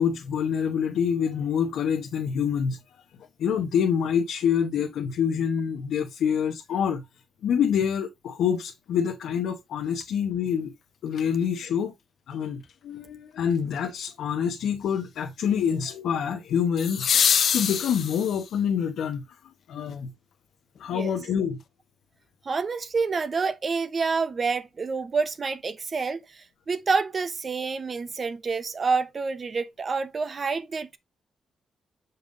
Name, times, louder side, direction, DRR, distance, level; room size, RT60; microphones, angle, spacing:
voice 1, 0.0-2.8 3.4-7.0 7.4-10.7 11.0-11.9 12.3-17.1 17.5-19.2 19.7-20.1 20.8-21.6, left 7 dB, 85° left, 1.0 m, -26 dB
sound 1, 11.1-11.2 16.8-18.6 20.8-20.9, left 7 dB, 60° left, 0.8 m, -24 dB
voice 2, 22.4-31.0, right 4 dB, 40° right, 0.8 m, -28 dB
6.9 x 5.7 x 2.6 m
cardioid pair, 115°, 0 cm